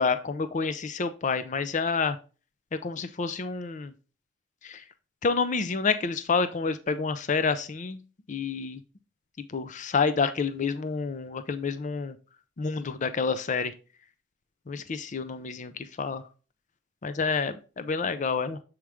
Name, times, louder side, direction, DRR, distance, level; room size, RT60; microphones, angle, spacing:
voice 1, 0.0-2.2 2.8-3.9 4.6-4.8 5.2-8.0 8.3-8.8 9.5-12.2 12.6-13.7 14.7-16.2 17.0-18.6, left 5 dB, 40° left, 11 dB, 0.5 m, -28 dB
7.4 x 4.6 x 3.4 m, 0.34 s
head